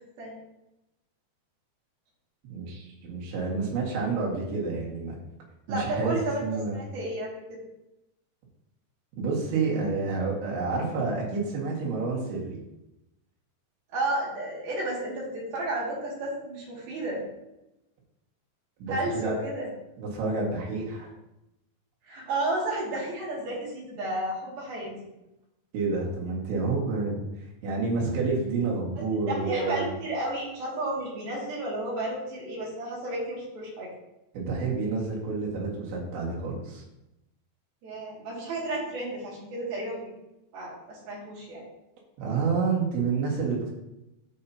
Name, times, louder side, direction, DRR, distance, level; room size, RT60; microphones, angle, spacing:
voice 1, 2.5-5.2 5.7-6.8 9.1-12.6 18.8-19.3 20.0-21.1 25.7-27.2 27.6-29.9 34.3-36.8 42.2-43.7, right 4 dB, 80° right, -3 dB, 4.1 m, -29 dB
voice 2, 5.7-6.4 6.7-7.6 13.9-17.2 18.9-19.7 22.1-24.9 29.3-33.9 37.8-40.1 40.5-41.6, right 1 dB, 60° right, -5 dB, 3.8 m, -32 dB
13.0 x 5.6 x 2.8 m, 0.92 s
omnidirectional pair, 5.2 m